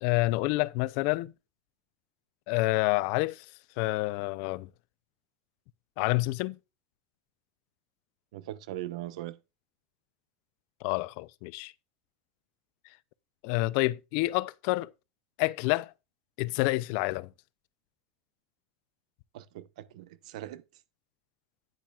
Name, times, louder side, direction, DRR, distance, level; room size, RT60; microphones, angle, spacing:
voice 1, 0.0-1.3 2.5-3.5 3.8-4.7 6.0-6.6 10.8-11.7 13.4-14.9 15.4-15.9 16.4-17.3, left 21 dB, 50° left, 0.5 m, -28 dB
voice 2, 8.3-9.4 19.3-20.6, right 14 dB, 80° right, 0.9 m, -40 dB
10.5 x 9.1 x 2.4 m
supercardioid pair, 170°, 4 cm